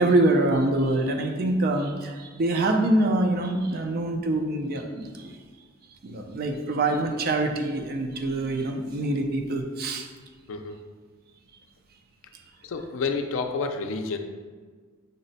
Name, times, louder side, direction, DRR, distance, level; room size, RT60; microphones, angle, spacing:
voice 1, 0.0-5.3 6.0-10.1, right 2 dB, 45° right, 4 dB, 0.4 m, -25 dB
voice 2, 12.6-14.2, left 4 dB, 65° left, 6 dB, 0.4 m, -29 dB
5.3 x 2.1 x 3.9 m, 1.5 s
head